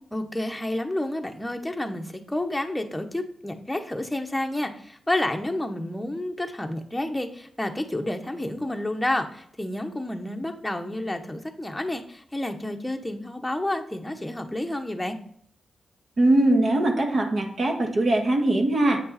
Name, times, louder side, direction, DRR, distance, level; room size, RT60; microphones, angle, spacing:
voice 1, 0.1-15.2, left 1 dB, 10° left, 4 dB, 0.9 m, -30 dB
voice 2, 16.2-19.0, right 1 dB, 55° right, 3 dB, 1.6 m, -21 dB
8.2 x 5.4 x 4.1 m, 0.68 s
cardioid pair, 85°, 0 cm